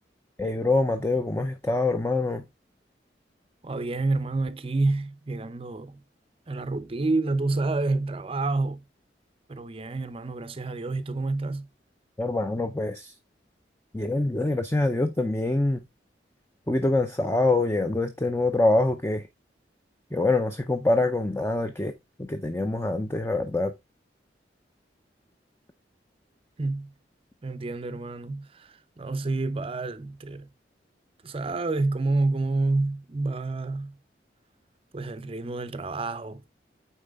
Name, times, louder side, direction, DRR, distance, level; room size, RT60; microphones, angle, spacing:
voice 1, 0.4-2.4 12.2-13.1 13.9-15.8 16.7-19.2 20.1-21.9 22.2-23.7, left 2 dB, 15° left, 0.6 m, -25 dB
voice 2, 3.6-6.0 6.5-8.8 9.5-11.7 20.1-20.2 26.6-26.9 27.4-30.5 31.2-34.0 34.9-36.4, right 3 dB, 30° right, 0.6 m, -28 dB
9.1 x 4.2 x 3.5 m
head